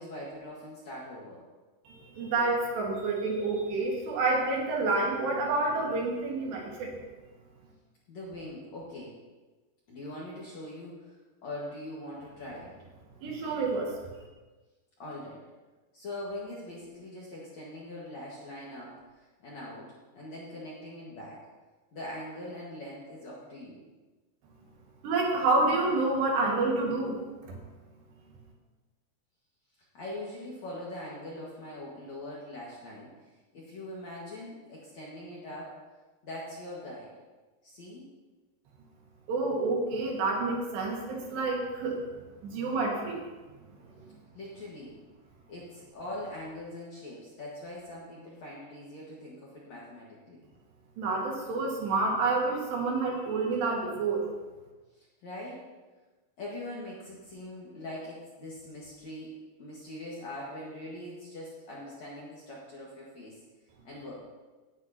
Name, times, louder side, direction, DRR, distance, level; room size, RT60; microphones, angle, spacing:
voice 1, 0.0-1.4 8.1-9.2 9.9-12.7 15.0-15.4 15.9-21.5 21.9-23.8 29.9-33.1 33.5-35.8 36.2-37.1 37.6-38.1 44.3-45.0 45.5-50.4 55.0-55.7 56.4-63.4 63.8-64.2, left 1 dB, 50° left, -5 dB, 2.3 m, -42 dB
voice 2, 1.9-6.9 13.2-14.2 25.0-27.2 27.4-27.6 39.3-42.0 42.4-43.2 43.9-44.0 51.0-54.3, right 3 dB, 70° right, -2 dB, 3.9 m, -28 dB
18.0 x 9.6 x 3.0 m, 1.2 s
omnidirectional pair, 5.3 m